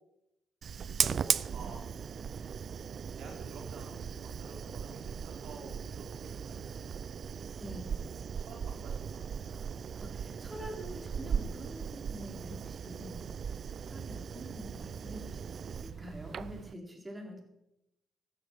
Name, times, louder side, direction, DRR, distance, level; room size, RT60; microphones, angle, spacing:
Fire, 0.6-16.7, right 7 dB, 50° right, 0.4 m, -38 dB
voice 1, 0.8-1.8 2.2-2.6 3.1-7.0 8.4-9.9, right 3 dB, 85° right, 0 dB, 4.7 m, -51 dB
voice 2, 7.5-8.2 10.0-17.4, equal, 20° right, 1 dB, 4.6 m, -46 dB
15.0 x 14.5 x 5.0 m, 0.87 s
cardioid pair, 90°, 0 cm